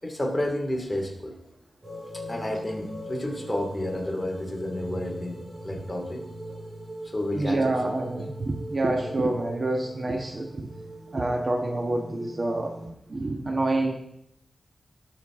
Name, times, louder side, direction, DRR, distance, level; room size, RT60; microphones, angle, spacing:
voice 1, 0.0-1.3 2.1-6.3 7.0-7.7, left 1 dB, 15° left, 1 dB, 2.6 m, -31 dB
sound 1, 1.8-12.9, equal, 20° right, 2.2 m, -41 dB
voice 2, 7.3-10.7 11.1-12.8 13.1-13.9, right 2 dB, 45° right, 3 dB, 1.4 m, -27 dB
19.5 x 7.0 x 3.8 m, 0.76 s
wide cardioid pair, 85°, 0 cm